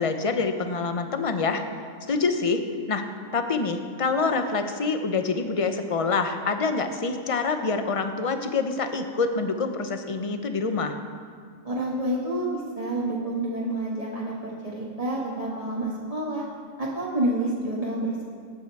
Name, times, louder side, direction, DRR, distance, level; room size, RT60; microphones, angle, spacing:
voice 1, 0.0-1.6 2.1-2.6 2.9-11.0, left 4 dB, 30° left, 7 dB, 0.7 m, -26 dB
voice 2, 11.6-16.4 16.8-18.2, right 1 dB, 25° right, -5 dB, 1.5 m, -28 dB
18.0 x 8.4 x 4.7 m, 2.2 s
omnidirectional pair, 1.5 m